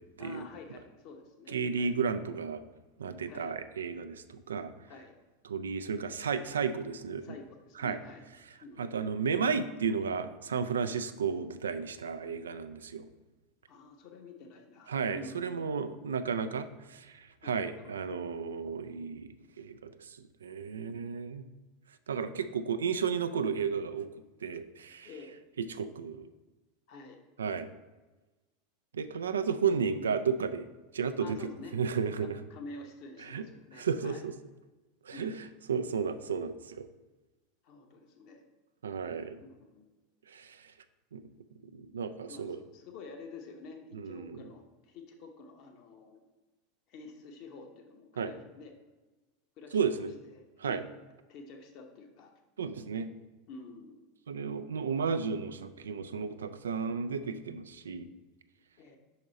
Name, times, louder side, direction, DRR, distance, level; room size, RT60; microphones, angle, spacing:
voice 1, 0.2-1.9 3.3-3.5 4.9-5.2 7.2-8.3 8.6-8.8 13.7-15.7 17.4-17.9 25.0-25.3 26.9-27.2 31.2-34.3 35.1-35.5 37.6-38.4 39.4-39.9 42.3-46.2 46.9-48.7 49.6-49.8 50.3-50.8 51.3-52.3 53.5-54.0 58.8-59.0, left 3 dB, 55° left, 4 dB, 1.0 m, -49 dB
voice 2, 1.5-2.6 3.0-4.7 5.4-7.2 7.8-8.0 8.8-13.1 14.9-21.4 22.1-24.1 24.4-25.1 25.6-26.3 27.4-27.7 28.9-30.7 30.9-31.4 31.7-32.4 33.3-33.4 33.8-34.3 35.0-35.3 35.7-36.9 38.8-39.4 40.3-40.7 41.1-41.2 41.7-42.6 43.9-44.4 48.2-48.3 49.7-50.1 50.6-50.8 52.6-53.1 54.3-58.1, right 6 dB, 80° right, 11 dB, 0.3 m, -33 dB
5.3 x 4.9 x 4.0 m, 1.2 s
hypercardioid pair, 85°, 0 cm